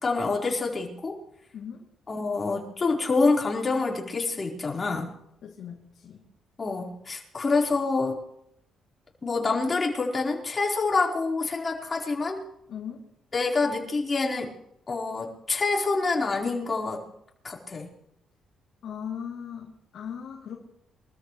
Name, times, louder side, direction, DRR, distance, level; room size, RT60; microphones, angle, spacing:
voice 1, 0.0-1.2 2.1-5.1 6.6-8.2 9.2-12.4 13.3-14.5 14.9-17.0 17.4-17.9, left 3 dB, 30° left, -2 dB, 4.4 m, -26 dB
voice 2, 1.5-1.8 5.4-6.2 12.7-13.0 18.8-20.6, left 8 dB, 70° left, -2 dB, 2.9 m, -38 dB
25.0 x 13.5 x 3.3 m, 0.75 s
cardioid pair, 90°, 0 cm